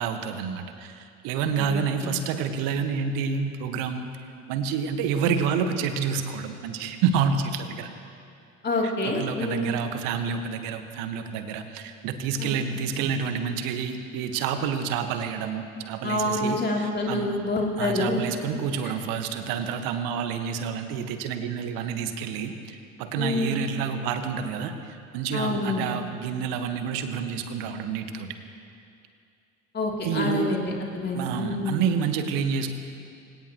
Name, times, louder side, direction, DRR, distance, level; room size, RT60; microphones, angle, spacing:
voice 1, 0.0-4.1 4.5-7.9 8.8-17.4 17.8-24.7 25.1-28.3 30.0-30.5 31.1-32.7, right 6 dB, 55° right, 7 dB, 1.5 m, -28 dB
voice 2, 1.6-2.2 8.6-9.8 12.4-12.5 16.0-18.2 18.5-18.6 18.8-18.9 23.2-23.6 25.3-25.9 29.7-31.9, left 2 dB, 25° left, -2 dB, 3.2 m, -27 dB
25.0 x 17.5 x 3.1 m, 2.5 s
figure-of-eight pair, 75°, 41 cm